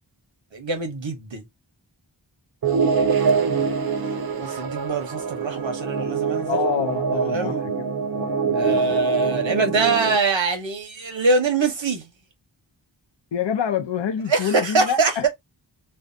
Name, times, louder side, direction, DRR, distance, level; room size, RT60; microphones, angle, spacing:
voice 1, 0.5-1.4 3.6-3.7 4.4-6.6 7.2-7.6 8.6-12.1 14.3-15.1, right 4 dB, 85° right, 0.9 m, -23 dB
sound 1, 2.6-10.2, right 5 dB, 55° right, 0.5 m, -24 dB
voice 2, 2.8-3.4 6.5-7.7 8.1-9.0 13.3-15.3, left 8 dB, 75° left, 0.6 m, -28 dB
2.6 x 2.2 x 2.5 m
wide cardioid pair, 45°, 44 cm